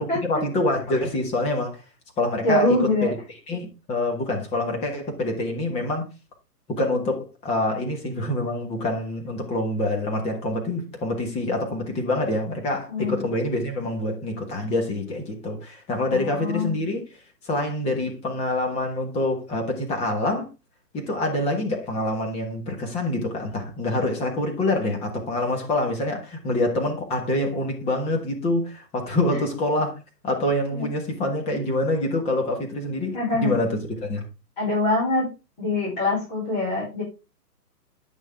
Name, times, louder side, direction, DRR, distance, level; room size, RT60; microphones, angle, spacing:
voice 1, 0.2-1.8 2.2-3.1 3.5-6.1 6.7-7.2 7.4-17.0 17.4-20.5 20.9-30.0 30.2-34.2, left 1 dB, 15° left, 1.4 m, -26 dB
voice 2, 2.4-3.1 12.9-13.3 16.1-16.7 29.3-29.4 30.7-30.8 33.1-33.5 34.6-35.3 35.6-37.0, left 2 dB, 30° left, 5.8 m, -24 dB
9.5 x 6.4 x 3.5 m
hypercardioid pair, 160°, 48 cm